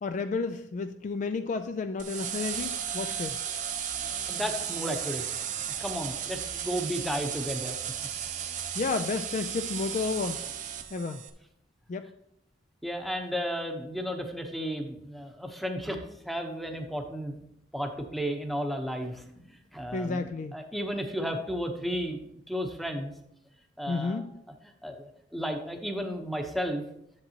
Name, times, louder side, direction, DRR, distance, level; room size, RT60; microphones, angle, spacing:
voice 1, 0.0-3.4 8.7-10.5 10.9-11.2 11.9-12.1 19.9-20.6 23.9-24.3, left 4 dB, 40° left, 9 dB, 0.3 m, -31 dB
sound 1, 2.0-11.3, right 9 dB, 45° right, 0.7 m, -35 dB
voice 2, 4.3-5.2 5.8-7.8 12.8-17.4 17.7-20.3 20.5-22.2 22.5-23.1 23.8-24.2 24.8-26.8, equal, ahead, 4 dB, 0.9 m, -33 dB
10.5 x 7.3 x 2.9 m, 0.79 s
head